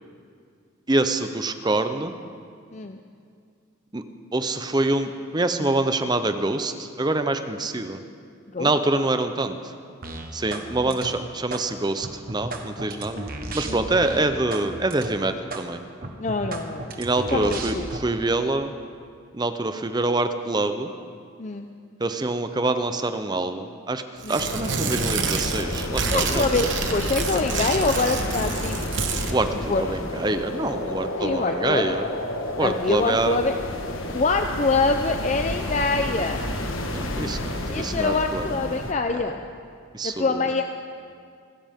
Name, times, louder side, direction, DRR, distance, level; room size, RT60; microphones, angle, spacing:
voice 1, 0.9-2.1 3.9-4.0 4.3-8.0 8.6-9.6 10.3-13.2 13.5-15.8 17.0-18.7 19.3-20.9 22.0-24.0 24.3-26.4 29.3-32.1 32.6-33.4 37.1-38.4 38.7-38.8 39.9-40.4, right 2 dB, 20° right, 9 dB, 0.6 m, -25 dB
sound 1, 10.0-10.7 10.9-11.6 12.0-14.6 14.9-15.1 15.5-15.6 16.0-18.0, right 2 dB, 45° right, 1.3 m, -33 dB
voice 2, 16.2-16.9 17.3-18.0 21.4-21.7 24.2-24.5 26.1-28.9 29.7-29.9 31.2-31.9 32.6-33.6 34.1-36.4 37.7-39.4 40.0-40.6, left 3 dB, 35° left, 6 dB, 0.5 m, -25 dB
Tearing, 24.2-29.4, right 5 dB, 65° right, 1.1 m, -28 dB
sound 2, 24.4-38.9, left 1 dB, 85° left, 1.4 m, -31 dB
26.0 x 13.0 x 3.6 m, 2.2 s
head